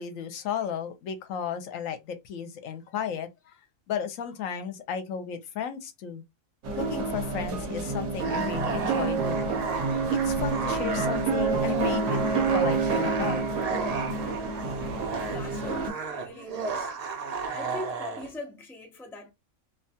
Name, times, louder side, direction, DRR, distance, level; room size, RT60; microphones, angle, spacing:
voice 1, 0.0-3.5 3.9-6.2 6.8-9.6 10.1-13.4, left 8 dB, 80° left, 1.0 m, -34 dB
sound 1, 6.6-15.9, right 4 dB, 65° right, 1.1 m, -28 dB
sound 2, 8.1-18.3, right 5 dB, 85° right, 0.3 m, -35 dB
voice 2, 15.2-16.9 17.2-19.3, left 2 dB, 5° left, 0.4 m, -41 dB
2.6 x 2.3 x 2.7 m
omnidirectional pair, 1.4 m